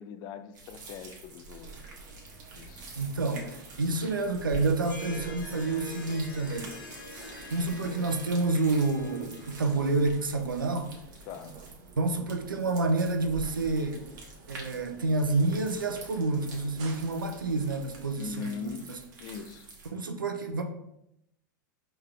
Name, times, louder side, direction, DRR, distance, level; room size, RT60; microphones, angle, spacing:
voice 1, 0.0-1.8 2.5-2.9 11.3-11.5 18.2-18.9 19.2-19.7, left 6 dB, 40° left, 11 dB, 0.4 m, -40 dB
sound 1, 0.5-19.9, right 3 dB, 65° right, 1.3 m, -47 dB
sound 2, 1.6-18.3, right 3 dB, 40° right, 0.8 m, -53 dB
voice 2, 3.0-6.8 7.5-10.9 12.0-14.0 14.5-19.0 19.9-20.6, right 3 dB, 85° right, 5 dB, 0.5 m, -29 dB
Harp, 4.7-10.5, left 1 dB, 80° left, 1.2 m, -45 dB
4.6 x 3.3 x 3.4 m, 0.81 s
hypercardioid pair, 95°, 11 cm